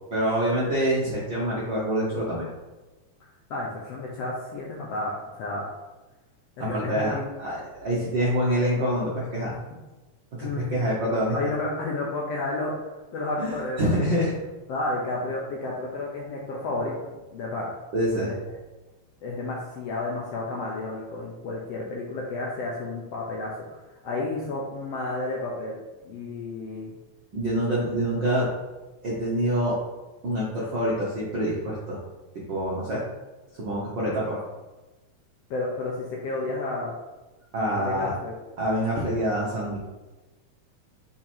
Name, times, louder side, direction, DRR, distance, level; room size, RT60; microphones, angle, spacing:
voice 1, 0.1-2.5 6.6-9.5 10.4-11.3 13.4-14.3 17.9-18.3 27.3-28.5 29.0-29.8 30.2-32.0 32.5-33.0 33.6-34.4 37.5-38.1 38.6-39.8, right 1 dB, 65° right, -7 dB, 1.1 m, -26 dB
voice 2, 3.5-5.6 6.6-7.2 10.4-10.7 11.3-14.2 14.7-16.9 17.3-17.7 18.2-18.4 19.2-25.8 26.0-26.9 35.5-36.9 37.7-38.3, left 2 dB, 70° left, -3 dB, 1.5 m, -31 dB
5.8 x 3.8 x 4.4 m, 1.1 s
omnidirectional pair, 3.7 m